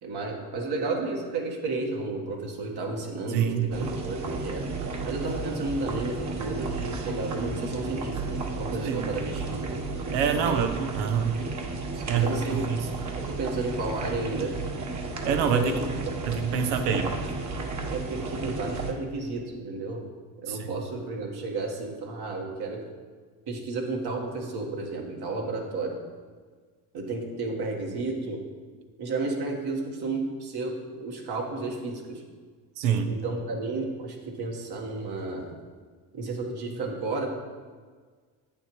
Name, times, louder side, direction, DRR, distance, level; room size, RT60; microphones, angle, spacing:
voice 1, 0.0-4.7 5.0-10.6 11.9-12.7 13.1-14.5 15.5-16.1 17.9-20.0 20.4-22.8 23.5-26.0 26.9-28.4 29.0-32.2 33.1-35.5 36.1-37.3, right 3 dB, 65° right, 0 dB, 1.5 m, -32 dB
voice 2, 3.3-3.7 8.8-9.1 10.1-11.4 12.1-12.9 15.2-15.8 16.3-17.1 20.5-20.8 32.8-33.1, right 7 dB, 90° right, 6 dB, 0.7 m, -26 dB
sound 1, 3.7-18.9, right 3 dB, 45° right, 1.1 m, -33 dB
8.2 x 7.0 x 3.1 m, 1.5 s
supercardioid pair, 60°, 41 cm